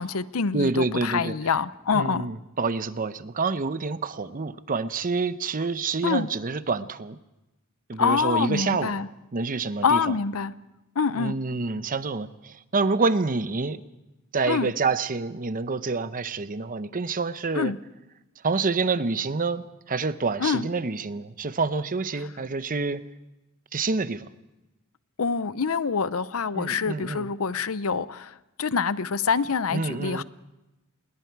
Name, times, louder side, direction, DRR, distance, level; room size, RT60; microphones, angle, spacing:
voice 1, 0.0-2.3 6.0-6.3 8.0-9.1 9.8-10.5 11.0-11.4 14.5-14.7 17.5-17.8 20.4-20.7 22.1-22.3 25.2-30.2, left 5 dB, 75° left, 16 dB, 0.7 m, -26 dB
voice 2, 0.5-1.4 1.9-7.2 7.9-8.9 9.3-10.0 11.2-13.8 14.3-17.7 18.4-23.0 23.7-24.3 26.5-27.3 29.7-30.2, right 4 dB, 40° right, 13 dB, 0.8 m, -27 dB
27.5 x 21.5 x 4.7 m, 0.99 s
head